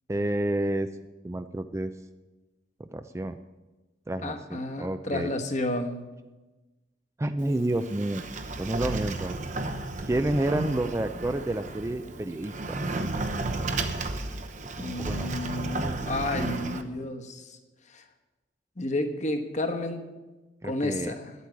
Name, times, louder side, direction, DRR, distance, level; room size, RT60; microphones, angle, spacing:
voice 1, 0.1-0.9 1.2-1.9 2.8-3.3 4.1-5.3 7.2-8.2 8.6-9.4 10.1-12.8 14.8-15.3 20.6-21.1, right 1 dB, 15° right, 9 dB, 0.4 m, -29 dB
voice 2, 4.2-6.0 14.8-17.4 17.9-18.0 18.8-20.0 20.6-21.3, left 2 dB, 40° left, 5 dB, 1.3 m, -31 dB
Sliding door, 7.4-16.8, right 2 dB, 45° right, 0.9 m, -33 dB
10.5 x 8.3 x 9.4 m, 1.2 s
head